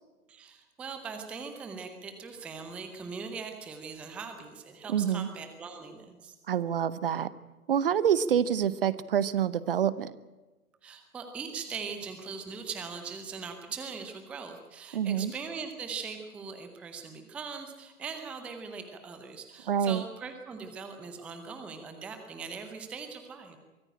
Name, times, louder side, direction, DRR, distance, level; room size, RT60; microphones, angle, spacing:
voice 1, 0.3-6.4 10.8-23.6, right 5 dB, 5° right, 6 dB, 0.6 m, -41 dB
voice 2, 4.9-5.3 6.5-7.3 7.7-10.1 14.9-15.3 19.7-20.0, right 9 dB, 40° right, 17 dB, 0.8 m, -27 dB
23.5 x 14.5 x 8.7 m, 1.2 s
figure-of-eight pair, 130°, 45 cm